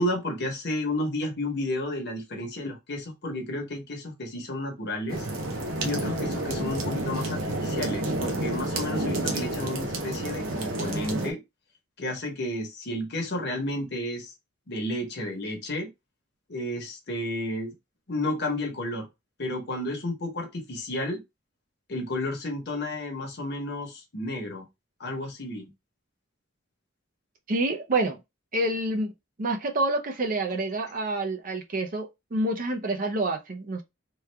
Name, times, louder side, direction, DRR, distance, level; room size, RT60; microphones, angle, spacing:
voice 1, 0.0-5.3 5.8-11.4 12.0-14.3 14.7-15.9 16.5-17.7 18.1-19.1 19.4-21.2 21.9-24.7 25.0-25.7, left 1 dB, 55° left, 1.0 m, -32 dB
sound 1, 5.1-11.3, right 1 dB, 80° right, 0.8 m, -30 dB
voice 2, 27.5-28.2 28.5-29.1 29.4-33.8, right 2 dB, 40° right, 0.5 m, -28 dB
3.1 x 2.3 x 3.3 m
head